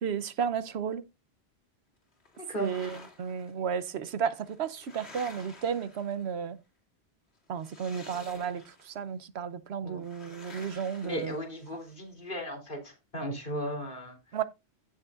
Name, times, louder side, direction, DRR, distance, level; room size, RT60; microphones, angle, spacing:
voice 1, 0.0-1.0 2.6-6.6 7.5-11.3 14.3-14.4, right 7 dB, 80° right, 1.1 m, -33 dB
sound 1, 2.3-3.5 4.3-6.5 7.5-9.0 10.0-11.9, left 3 dB, 85° left, 3.0 m, -51 dB
voice 2, 11.0-14.2, equal, 55° left, 3.4 m, -36 dB
16.0 x 6.4 x 2.5 m
omnidirectional pair, 1.1 m